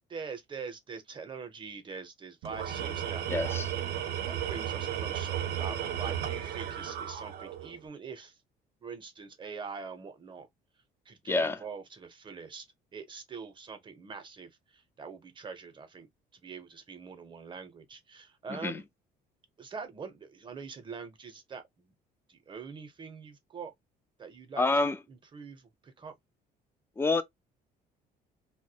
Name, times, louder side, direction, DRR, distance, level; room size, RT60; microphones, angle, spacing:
voice 1, 0.1-3.6 4.3-8.4 8.8-10.5 11.1-12.7 12.9-18.9 19.6-21.9 22.3-23.7 24.2-24.7 25.1-26.1, right 5 dB, 30° right, 0.6 m, -44 dB
Tools, 2.4-7.8, right 10 dB, 70° right, 0.5 m, -34 dB
voice 2, 3.3-3.7 11.3-11.6 18.5-18.8 24.6-25.0 27.0-27.2, left 3 dB, 15° left, 0.3 m, -27 dB
2.2 x 2.1 x 2.7 m
cardioid pair, 110°, 17 cm